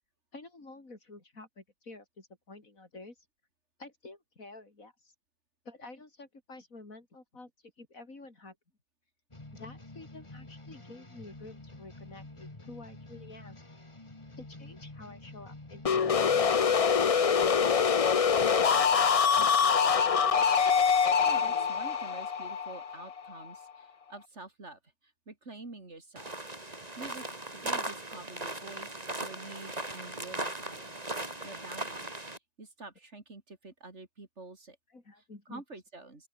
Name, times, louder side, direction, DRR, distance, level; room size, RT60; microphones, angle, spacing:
voice 1, 0.3-3.2 3.8-5.1 5.6-7.5 7.8-8.6 9.5-13.6 14.4-16.9 34.9-35.6, left 2 dB, 70° left, 4.8 m, -50 dB
sound 1, 9.3-16.5, left 2 dB, 20° left, 2.3 m, -48 dB
sound 2, 15.8-23.6, left 6 dB, 45° left, 0.4 m, -25 dB
voice 2, 21.2-26.4 27.0-32.2 32.6-34.8 35.5-36.3, right 3 dB, 50° right, 3.6 m, -48 dB
sound 3, 26.2-32.4, right 2 dB, 25° right, 3.3 m, -38 dB
open air
omnidirectional pair, 1.5 m